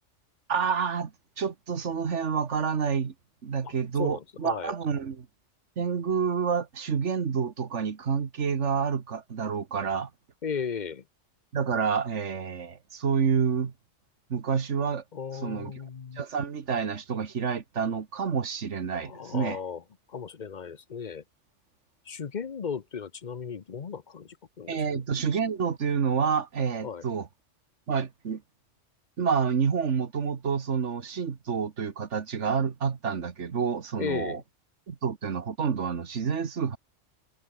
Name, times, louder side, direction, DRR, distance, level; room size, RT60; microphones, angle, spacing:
voice 1, 0.5-1.1 1.4-3.1 3.4-5.3 5.8-10.1 11.5-13.7 14.3-15.0 15.4-15.7 16.2-19.6 24.7-27.3 27.9-28.4 29.2-34.4 34.9-36.8, right 6 dB, 70° right, 1.8 m, -28 dB
voice 2, 4.0-4.7 10.4-11.0 15.1-16.2 18.9-19.8 20.1-21.2 22.1-25.0 26.8-27.0 34.0-34.4, left 6 dB, 40° left, 0.9 m, -36 dB
omnidirectional pair, 1.3 m